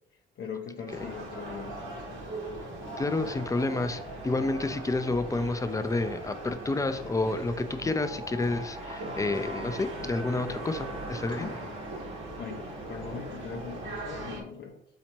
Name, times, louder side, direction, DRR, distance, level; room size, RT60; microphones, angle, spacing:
voice 1, 0.1-2.4 11.4-11.8 12.4-14.8, left 6 dB, 60° left, 0 dB, 0.6 m, -41 dB
sound 1, 0.9-14.4, right 1 dB, 30° right, 0.8 m, -46 dB
sound 2, 0.9-14.4, right 2 dB, 80° right, 1.2 m, -40 dB
voice 2, 3.0-11.5, left 2 dB, 15° left, 10 dB, 0.4 m, -29 dB
4.2 x 2.9 x 4.3 m, 0.74 s
cardioid pair, 90°, 20 cm